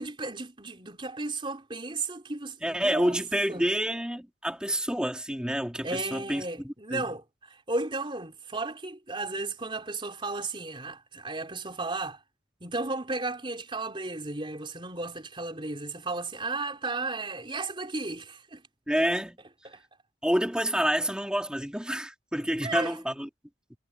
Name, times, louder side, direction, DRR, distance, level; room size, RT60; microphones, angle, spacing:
voice 1, 0.0-3.2 3.5-3.7 5.8-12.2 12.6-18.6 19.6-19.8 22.6-23.0, right 3 dB, 25° right, 4.5 m, -34 dB
voice 2, 2.6-7.0 18.9-19.4 20.2-23.3, equal, 5° right, 2.9 m, -28 dB
head